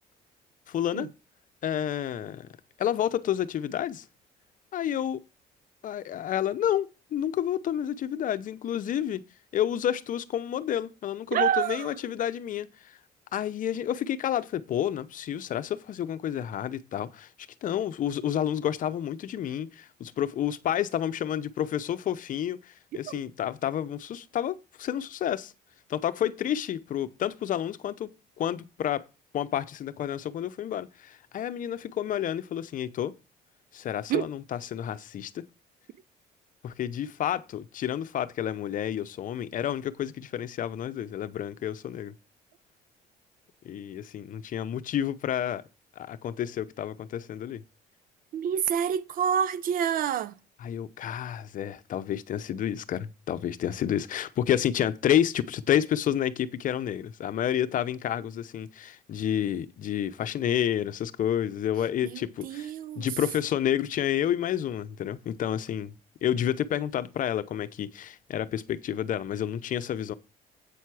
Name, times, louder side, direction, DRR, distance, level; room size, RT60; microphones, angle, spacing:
voice 1, 0.7-1.1 1.6-2.5 2.8-4.0 4.7-5.2 5.8-9.2 9.5-13.0 13.3-17.3 17.6-25.5 25.9-28.1 28.4-29.0 29.3-33.1 33.7-35.4 36.6-42.1 43.6-45.6 46.0-47.6 50.6-62.7 63.0-65.9 66.2-70.1, left 10 dB, 50° left, 0.7 m, -30 dB
voice 2, 11.3-11.9 34.1-34.3 48.3-50.3 62.0-63.1, right 8 dB, 55° right, 0.6 m, -27 dB
8.4 x 5.7 x 4.8 m
cardioid pair, 110°, 17 cm